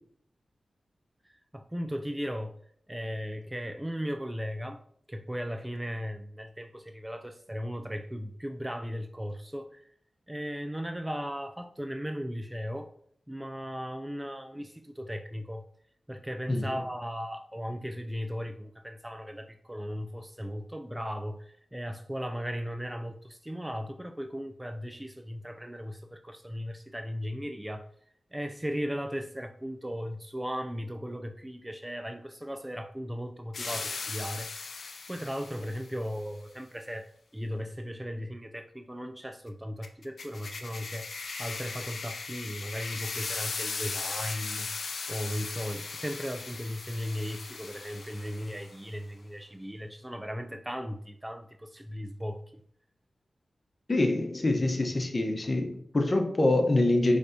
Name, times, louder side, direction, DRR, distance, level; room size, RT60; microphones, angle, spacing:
voice 1, 1.5-2.5 2.9-4.8 5.1-9.9 10.3-12.9 13.3-15.7 16.1-27.9 28.3-34.6 35.1-41.1 41.4-44.7 45.1-52.4, equal, 15° right, 0.4 m, -37 dB
sound 1, 33.5-35.9 39.8-48.8, left 4 dB, 75° left, 0.4 m, -38 dB
voice 2, 53.9-57.2, left 2 dB, 40° left, 0.9 m, -25 dB
5.1 x 3.3 x 2.7 m
cardioid pair, 50°, 0 cm